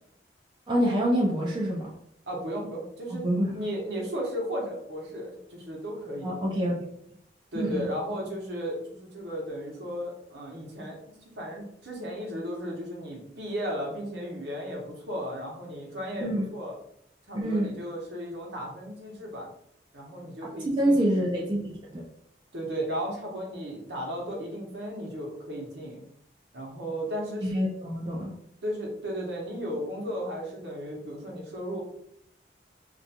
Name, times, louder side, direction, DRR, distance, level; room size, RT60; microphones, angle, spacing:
voice 1, 0.7-1.9 3.2-3.5 6.2-6.7 7.5-7.8 16.2-16.4 17.3-17.7 20.8-22.0 27.4-28.3, equal, 25° right, -3 dB, 0.3 m, -26 dB
voice 2, 2.3-3.3 3.5-6.3 7.5-11.0 11.4-16.7 17.3-19.5 19.9-21.0 22.5-26.0 26.5-27.5 28.6-31.8, equal, 70° right, -2 dB, 0.8 m, -35 dB
2.4 x 2.2 x 2.7 m, 0.70 s
head